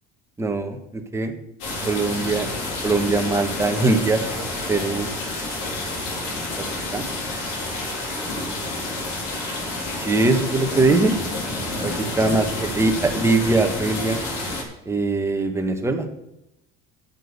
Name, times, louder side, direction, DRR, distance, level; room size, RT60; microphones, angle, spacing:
voice 1, 0.4-1.3 1.8-2.5 2.8-4.2 4.7-5.1 6.9-7.1 10.0-11.1 11.8-12.5 12.8-14.2 14.9-16.1, right 3 dB, 10° right, 4 dB, 1.1 m, -21 dB
sound 1, 1.6-14.6, left 2 dB, 85° left, 3.3 m, -29 dB
8.3 x 7.1 x 8.3 m, 0.87 s
cardioid pair, 155°, 31 cm